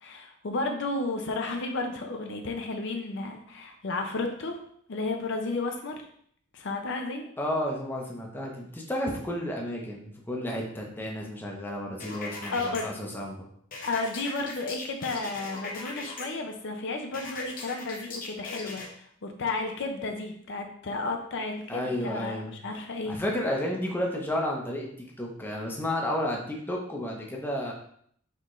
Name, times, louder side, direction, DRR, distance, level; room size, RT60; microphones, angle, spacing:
voice 1, 0.0-4.6 4.9-6.1 6.5-7.3 12.5-12.9 13.8-23.2, left 3 dB, 65° left, 4 dB, 0.6 m, -32 dB
voice 2, 7.4-13.5 21.7-22.6 23.0-27.7, left 1 dB, 10° left, -1 dB, 0.7 m, -32 dB
sound 1, 12.0-12.8 13.7-16.2 17.1-18.9, left 3 dB, 45° left, 0.9 m, -39 dB
4.4 x 3.6 x 3.1 m, 0.66 s
head